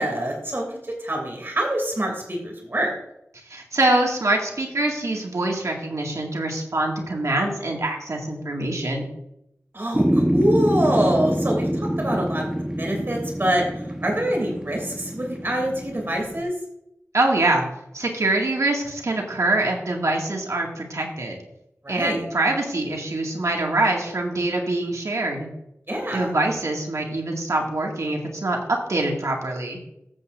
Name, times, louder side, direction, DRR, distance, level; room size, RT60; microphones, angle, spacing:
voice 1, 0.0-2.9 9.7-12.5 12.8-16.5 21.8-22.2 25.9-26.3, right 1 dB, 45° right, 0 dB, 2.8 m, -25 dB
voice 2, 3.5-9.1 17.1-17.6 17.9-21.4 21.9-25.5 26.1-28.6 28.9-29.8, right 2 dB, 80° right, 0 dB, 2.1 m, -24 dB
sound 1, 9.9-16.4, equal, 10° right, 1.0 m, -25 dB
13.5 x 8.2 x 2.6 m, 0.80 s
wide cardioid pair, 55°, 5 cm